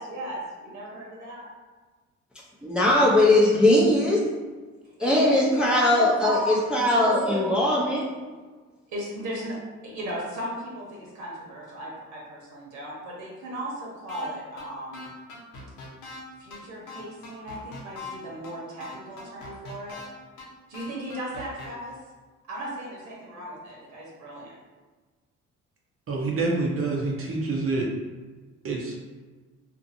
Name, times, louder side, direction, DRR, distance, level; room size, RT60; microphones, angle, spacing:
voice 1, 0.0-1.4 5.0-5.4 5.7-6.5 6.9-7.5 8.9-9.6 9.8-15.2 16.4-20.0 20.7-22.0 22.5-24.5, equal, 70° right, -4 dB, 1.1 m, -35 dB
voice 2, 2.6-4.3 5.0-8.1, left 1 dB, 5° right, -5 dB, 0.5 m, -20 dB
sound 1, 14.1-14.3 14.6-14.7 14.9-16.2 16.5-16.6 16.9-18.1 18.4-18.5 18.8-20.1 20.4-20.5 20.7-21.7, left 3 dB, 80° left, 0.8 m, -41 dB
voice 3, 26.1-27.9 28.6-28.9, right 3 dB, 45° right, -2 dB, 0.6 m, -27 dB
2.6 x 2.5 x 2.6 m, 1.3 s
cardioid pair, 90°, 30 cm